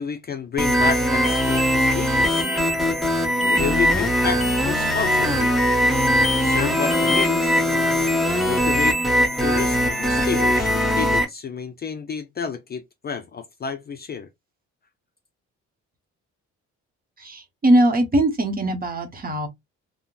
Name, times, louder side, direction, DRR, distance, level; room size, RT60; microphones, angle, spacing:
voice 1, 0.0-2.5 3.4-5.5 6.3-7.6 8.2-9.0 9.4-14.3, left 6 dB, 35° left, 0.4 m, -30 dB
sound 1, 0.6-11.2, equal, ahead, 0.8 m, -20 dB
voice 2, 17.2-19.5, right 1 dB, 30° right, 0.9 m, -20 dB
3.6 x 2.1 x 2.3 m
cardioid pair, 90°, 30 cm